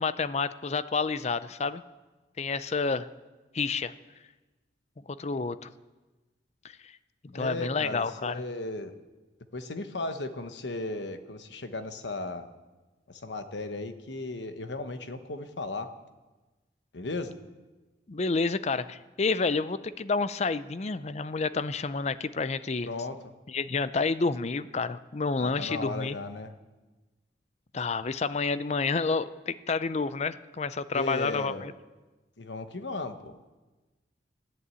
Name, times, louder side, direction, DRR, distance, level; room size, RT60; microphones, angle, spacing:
voice 1, 0.0-1.8 2.4-3.1 3.5-3.9 5.2-5.7 6.6-6.9 7.2-8.4 18.1-22.9 23.5-26.2 27.7-31.7, left 4 dB, 40° left, 15 dB, 0.5 m, -29 dB
voice 2, 7.3-9.0 9.5-12.5 13.1-15.9 16.9-17.4 22.8-23.2 25.4-26.5 30.9-31.7 32.4-33.5, left 2 dB, 80° left, 9 dB, 1.1 m, -36 dB
14.0 x 11.0 x 8.2 m, 1.2 s
head